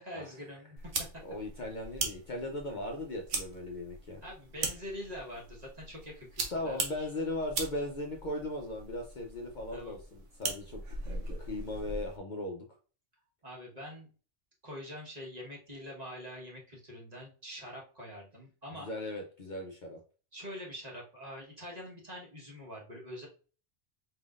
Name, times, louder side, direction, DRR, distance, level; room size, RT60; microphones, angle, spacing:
voice 1, 0.0-1.1 4.2-7.1 9.7-9.9 13.4-14.1 14.6-18.9 20.3-23.3, equal, 35° right, -3 dB, 1.4 m, -45 dB
sound 1, 0.8-12.2, right 4 dB, 80° right, 1.2 m, -40 dB
voice 2, 1.2-4.2 6.5-12.6 18.7-20.0, left 1 dB, 45° left, 1 dB, 0.7 m, -38 dB
4.6 x 3.7 x 2.4 m, 0.37 s
omnidirectional pair, 1.2 m